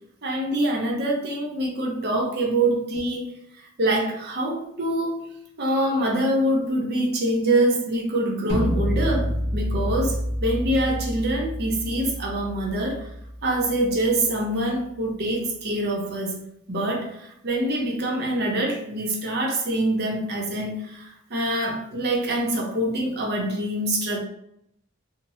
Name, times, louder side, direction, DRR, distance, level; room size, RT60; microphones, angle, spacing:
voice 1, 0.2-3.4 3.8-5.3 5.6-13.1 13.4-24.2, right 1 dB, 50° right, -1 dB, 0.7 m, -25 dB
sound 1, 8.5-14.5, equal, 45° left, 0.9 m, -28 dB
2.7 x 2.1 x 3.0 m, 0.74 s
head